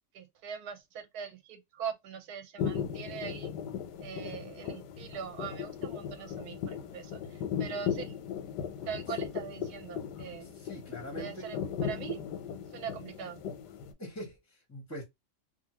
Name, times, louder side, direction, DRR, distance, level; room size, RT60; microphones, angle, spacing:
voice 1, 0.1-3.5 4.0-7.2 7.6-8.2 8.9-10.5 11.2-12.2 12.7-13.4, right 7 dB, 75° right, 1.0 m, -41 dB
sound 1, 2.6-13.9, left 8 dB, 85° left, 1.2 m, -37 dB
voice 2, 10.3-11.7 14.0-15.0, equal, 15° left, 0.5 m, -43 dB
2.7 x 2.6 x 2.9 m
omnidirectional pair, 1.8 m